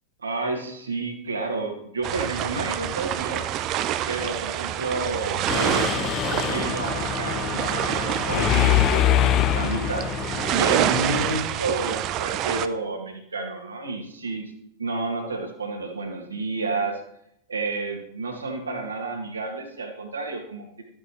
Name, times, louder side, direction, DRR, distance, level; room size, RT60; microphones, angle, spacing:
voice 1, 0.2-3.5 4.1-6.1 6.5-10.1 10.5-14.5 14.8-17.0 17.5-20.8, right 3 dB, 75° right, 1 dB, 2.0 m, -30 dB
sound 1, 2.0-12.7, right 12 dB, 35° right, 0.5 m, -27 dB
Mechanisms, 5.5-11.4, left 12 dB, 35° left, 0.3 m, -25 dB
12.5 x 8.5 x 3.1 m, 0.75 s
figure-of-eight pair, 90°, 0 cm